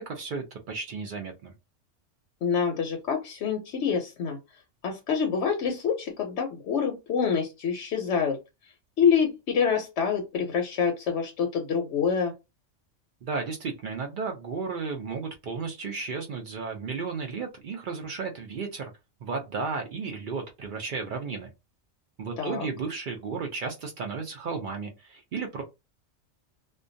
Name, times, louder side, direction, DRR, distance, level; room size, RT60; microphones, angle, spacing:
voice 1, 0.0-1.5 13.2-18.9 19.2-21.5 22.2-25.6, right 4 dB, 65° right, 4 dB, 0.5 m, -34 dB
voice 2, 2.4-4.4 4.8-8.4 9.0-12.3 22.4-22.7, left 6 dB, 70° left, 3 dB, 0.9 m, -26 dB
2.2 x 2.2 x 2.5 m, 0.24 s
omnidirectional pair, 1.3 m